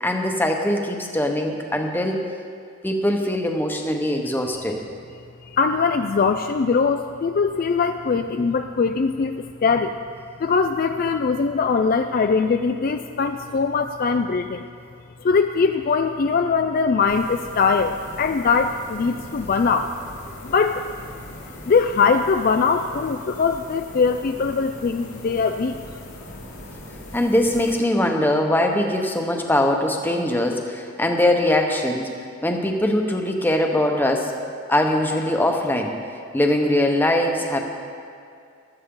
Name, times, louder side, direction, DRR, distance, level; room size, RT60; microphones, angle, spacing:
voice 1, 0.0-2.2 2.8-4.8 27.1-32.1 32.4-34.3 34.7-35.9 36.3-37.6, left 1 dB, 10° left, 2 dB, 0.9 m, -21 dB
voice 2, 5.5-10.0 10.4-14.7 15.2-19.9 20.4-20.8 21.4-25.8, left 5 dB, 40° left, 7 dB, 0.3 m, -21 dB
sound 1, 17.1-27.8, left 1 dB, 90° left, 2.7 m, -40 dB
15.5 x 12.5 x 3.8 m, 2.4 s
head